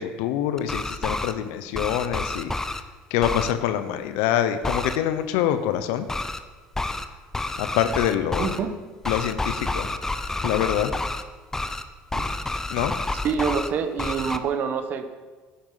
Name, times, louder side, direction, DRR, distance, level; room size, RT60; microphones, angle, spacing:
voice 1, 0.0-2.5 3.1-6.1 7.6-8.5 9.1-9.9 10.4-10.9 12.7-12.9, left 11 dB, 85° left, 10 dB, 0.9 m, -25 dB
sound 1, 0.6-1.3 1.7-2.8 3.2-3.5 4.6-5.0 6.1-6.4 6.7-7.1 7.3-8.6 9.0-11.2 11.5-11.8 12.1-13.7 14.0-14.4, left 2 dB, 10° left, 0.8 m, -29 dB
voice 2, 8.4-8.7 12.1-12.3 13.2-15.1, right 6 dB, 50° right, 8 dB, 1.2 m, -26 dB
13.0 x 10.0 x 5.7 m, 1.4 s
cardioid pair, 115°, 4 cm